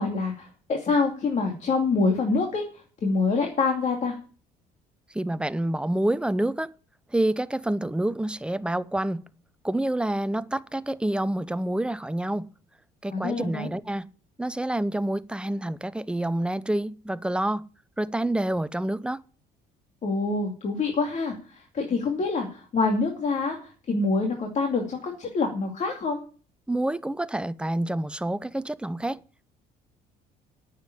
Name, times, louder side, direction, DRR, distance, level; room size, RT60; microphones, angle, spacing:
voice 1, 0.0-4.2 13.1-13.7 20.0-26.2, left 3 dB, 45° left, 2.5 m, -26 dB
voice 2, 5.1-6.7 7.1-9.2 9.6-12.5 13.0-14.0 14.4-17.6 18.0-19.2 26.7-29.2, right 1 dB, 5° right, 0.6 m, -27 dB
9.3 x 7.4 x 9.1 m
cardioid pair, 110°, 17 cm